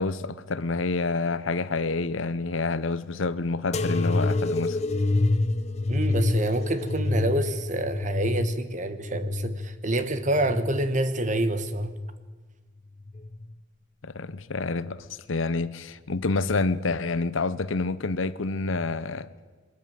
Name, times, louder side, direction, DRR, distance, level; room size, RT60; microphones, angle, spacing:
voice 1, 0.0-4.8 14.0-19.3, left 3 dB, 75° left, 0.8 m, -28 dB
sound 1, 3.7-10.9 11.5-12.2 13.0-13.5 14.5-14.6, left 2 dB, 35° left, 0.7 m, -27 dB
voice 2, 5.9-11.9, right 1 dB, 40° right, 1.2 m, -27 dB
22.0 x 13.5 x 9.2 m
head